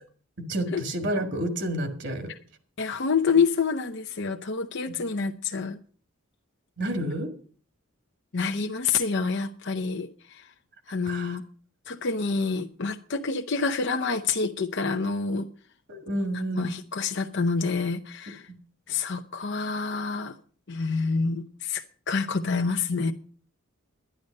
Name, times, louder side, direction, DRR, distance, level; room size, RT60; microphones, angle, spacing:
voice 1, 0.5-2.3 6.8-7.3 11.1-11.4 15.9-16.7, right 1 dB, 55° right, 1.9 m, -29 dB
voice 2, 2.8-5.8 8.3-10.4 10.9-11.4 11.9-15.5 16.5-18.5 18.9-20.3 20.7-23.1, left 4 dB, 55° left, 0.7 m, -27 dB
11.0 x 10.5 x 6.5 m
head